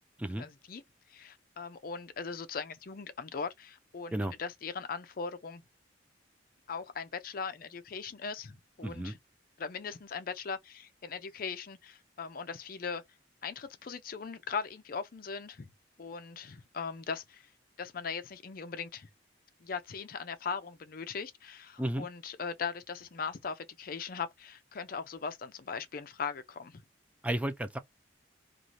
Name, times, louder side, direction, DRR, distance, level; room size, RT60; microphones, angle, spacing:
voice 1, 0.4-0.8 1.1-5.6 6.7-9.2 9.6-13.0 13.4-15.7 16.0-17.5 17.8-19.1 19.6-26.8, left 5 dB, 50° left, 0.5 m, -39 dB
voice 2, 8.8-9.1 21.8-22.1 27.2-27.8, right 1 dB, 5° right, 0.4 m, -33 dB
2.6 x 2.4 x 3.0 m
head